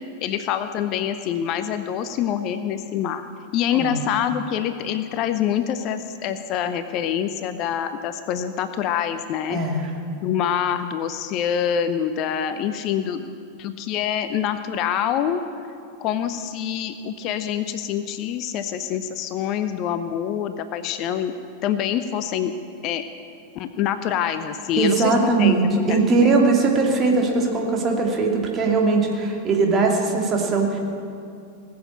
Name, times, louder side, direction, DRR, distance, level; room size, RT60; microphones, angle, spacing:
voice 1, 0.2-3.3 3.5-9.6 10.2-15.4 16.0-21.3 21.6-22.5 22.8-23.0 23.5-25.6 25.9-26.4, left 9 dB, 40° left, 10 dB, 0.6 m, -26 dB
voice 2, 9.5-9.9 24.7-30.8, right 3 dB, 25° right, 0 dB, 2.6 m, -20 dB
19.5 x 7.6 x 8.7 m, 2.5 s
figure-of-eight pair, 90°, 0 cm